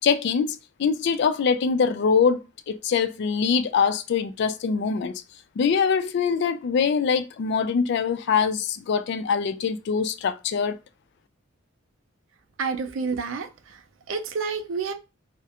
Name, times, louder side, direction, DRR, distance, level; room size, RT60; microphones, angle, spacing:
voice 1, 0.0-5.2 5.6-10.8, left 6 dB, 60° left, 0.3 m, -23 dB
voice 2, 12.6-14.9, right 5 dB, 85° right, 0.4 m, -30 dB
2.4 x 2.1 x 2.8 m
head